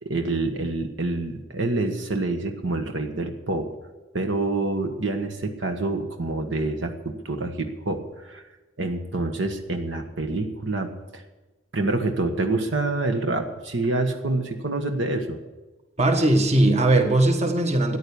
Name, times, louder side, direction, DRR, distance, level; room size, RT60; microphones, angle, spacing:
voice 1, 0.0-3.7 4.1-8.4 8.8-11.2 11.7-15.4, right 2 dB, 70° right, 5 dB, 1.4 m, -27 dB
voice 2, 16.0-18.0, right 2 dB, 35° right, 5 dB, 1.5 m, -19 dB
14.5 x 9.9 x 7.1 m, 1.2 s
head